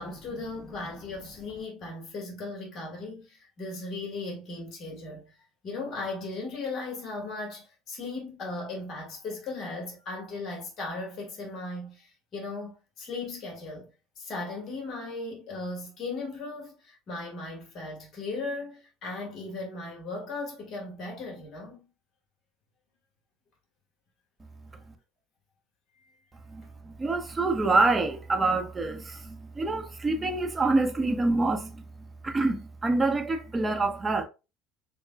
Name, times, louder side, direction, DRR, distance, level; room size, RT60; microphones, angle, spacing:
voice 1, 0.0-5.3 5.6-13.9 14.1-21.8 26.0-26.1, left 3 dB, 50° left, 1.7 m, -37 dB
voice 2, 26.5-34.2, right 3 dB, 20° right, 0.9 m, -26 dB
6.6 x 2.3 x 2.2 m
supercardioid pair, 85°, 0 cm